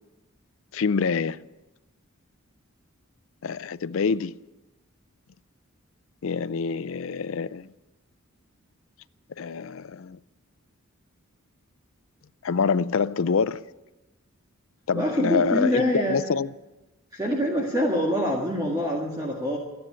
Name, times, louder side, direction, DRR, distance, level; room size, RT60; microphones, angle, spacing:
voice 1, 0.7-1.4 3.4-4.4 6.2-7.7 9.4-10.2 12.4-13.6 14.9-16.5, left 5 dB, 65° left, 0.5 m, -26 dB
voice 2, 14.9-16.2 17.1-19.6, equal, 20° right, 1.8 m, -25 dB
14.0 x 10.5 x 9.5 m
head